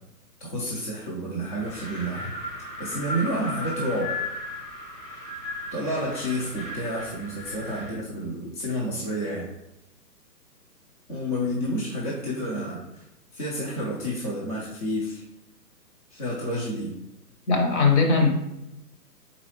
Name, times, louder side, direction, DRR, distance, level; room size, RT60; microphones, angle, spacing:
voice 1, 0.4-2.3 2.8-4.1 5.7-9.5 11.1-13.0 13.3-15.2 16.1-16.9, equal, 25° left, -5 dB, 0.5 m, -30 dB
Wind, 1.6-8.0, left 1 dB, 90° left, 1.5 m, -36 dB
voice 2, 17.5-18.3, left 4 dB, 45° left, 2 dB, 1.0 m, -19 dB
4.0 x 3.9 x 3.1 m, 0.88 s
hypercardioid pair, 135°, 48 cm